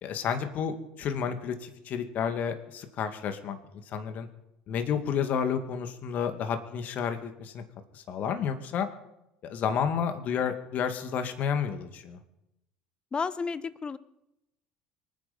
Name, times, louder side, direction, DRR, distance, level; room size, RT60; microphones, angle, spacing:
voice 1, 0.0-3.6 3.9-4.3 4.7-7.6 7.9-8.9 9.4-12.2, left 7 dB, 50° left, 7 dB, 2.3 m, -31 dB
voice 2, 13.1-14.0, left 5 dB, 30° left, 15 dB, 1.1 m, -32 dB
24.5 x 9.9 x 5.4 m, 0.86 s
hypercardioid pair, 70°, 3 cm